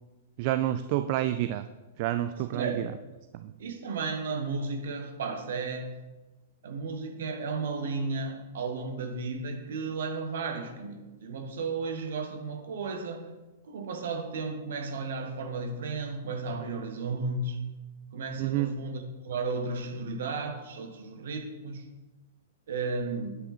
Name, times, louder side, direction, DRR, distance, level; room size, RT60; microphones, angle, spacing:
voice 1, 0.4-1.6 2.0-2.9 3.3-3.5 18.4-18.7, right 13 dB, 45° right, 11 dB, 0.3 m, -28 dB
voice 2, 2.5-2.9 3.6-5.9 6.6-13.3 13.6-17.6 18.1-21.8 22.7-23.4, right 4 dB, 60° right, 5 dB, 1.5 m, -34 dB
9.7 x 5.8 x 4.3 m, 1.2 s
figure-of-eight pair, 105°, 0 cm